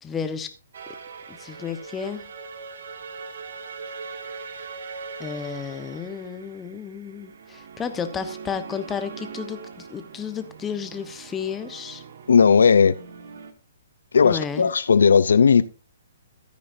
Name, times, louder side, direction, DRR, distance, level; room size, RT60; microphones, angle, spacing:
voice 1, 0.0-0.5 1.3-2.2 5.2-12.0 14.2-14.7, left 7 dB, 15° left, 1.0 m, -32 dB
sound 1, 0.7-13.5, right 5 dB, 70° right, 1.5 m, -41 dB
voice 2, 12.3-12.9 14.1-15.6, left 6 dB, 85° left, 0.6 m, -16 dB
14.0 x 9.6 x 2.7 m
hypercardioid pair, 145°, 0 cm